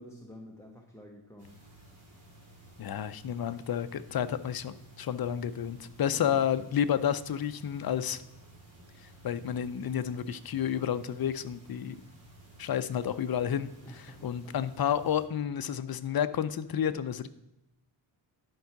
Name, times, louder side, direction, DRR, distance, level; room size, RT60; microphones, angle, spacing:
voice 1, 0.0-1.6 6.1-6.5 13.8-14.6, equal, 5° left, 1 dB, 1.0 m, -49 dB
sound 1, 1.4-15.3, right 1 dB, 35° right, 3.8 m, -55 dB
voice 2, 2.8-8.2 9.2-12.0 12.6-13.7 14.2-17.3, left 9 dB, 50° left, 12 dB, 0.6 m, -30 dB
11.0 x 4.7 x 5.8 m, 0.92 s
wide cardioid pair, 120°, 46 cm